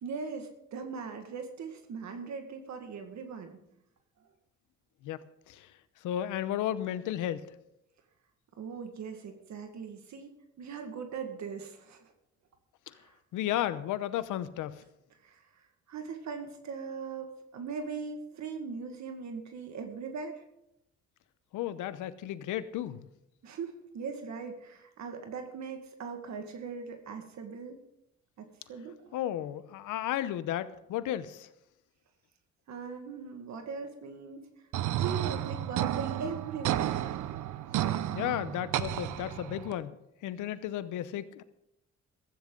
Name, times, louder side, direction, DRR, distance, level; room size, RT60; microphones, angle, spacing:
voice 1, 0.0-3.6 8.6-10.3 10.6-12.1 12.9-13.1 15.2-20.4 23.4-27.8 28.4-29.2 32.7-34.4 34.9-36.9, right 5 dB, 65° right, 5 dB, 1.9 m, -40 dB
voice 2, 5.0-5.7 6.0-7.5 12.9-13.0 13.3-14.8 21.5-23.1 29.1-31.5 38.1-41.4, left 12 dB, 90° left, 14 dB, 0.9 m, -34 dB
sound 1, 34.7-39.7, right 12 dB, 80° right, 0.7 m, -32 dB
15.5 x 14.0 x 3.9 m, 0.84 s
cardioid pair, 90°, 30 cm